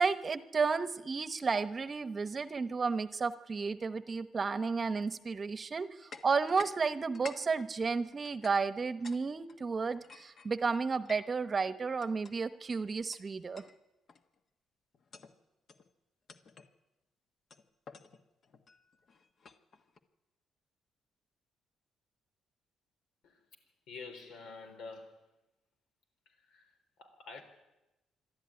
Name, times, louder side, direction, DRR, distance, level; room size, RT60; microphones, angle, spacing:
voice 1, 0.0-13.6, right 4 dB, 30° right, 1.0 m, -32 dB
sound 1, 6.1-6.8 7.0-9.2 9.5-11.4 12.0-12.3 13.1-13.2 13.5-13.8 14.1-14.4 14.9-15.3 15.7-15.9 16.3-16.7 17.5-20.0, left 5 dB, 45° left, 1.4 m, -51 dB
voice 2, 23.9-25.3 26.3-27.4, left 4 dB, 85° left, 3.9 m, -48 dB
26.5 x 12.0 x 9.7 m
cardioid pair, 115°, 0 cm